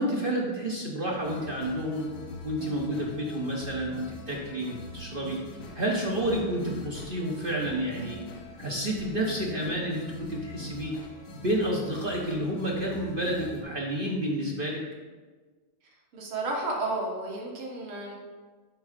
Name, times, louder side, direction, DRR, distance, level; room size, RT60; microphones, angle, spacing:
voice 1, 0.0-2.1 2.4-5.4 5.7-8.2 8.6-10.9 11.3-14.8, right 1 dB, 50° right, -3 dB, 0.6 m, -30 dB
sound 1, 1.1-13.6, left 1 dB, 90° left, 1.8 m, -43 dB
voice 2, 16.1-18.1, right 2 dB, 85° right, -2 dB, 2.2 m, -32 dB
9.3 x 3.7 x 5.0 m, 1.4 s
omnidirectional pair, 2.3 m